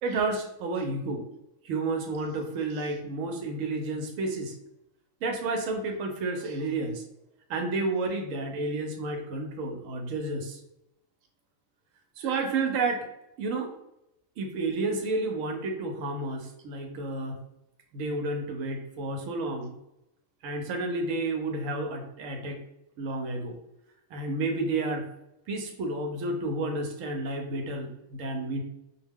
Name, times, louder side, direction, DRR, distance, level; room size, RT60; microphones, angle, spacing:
voice 1, 0.0-1.3 1.6-4.5 5.2-7.0 7.5-10.6 12.2-13.1 13.4-13.7 14.4-17.4 17.9-19.7 20.4-22.6 23.0-23.6 24.1-25.0 25.5-28.6, right 2 dB, 75° right, 4 dB, 0.9 m, -31 dB
2.4 x 2.1 x 3.4 m, 0.86 s
omnidirectional pair, 1.4 m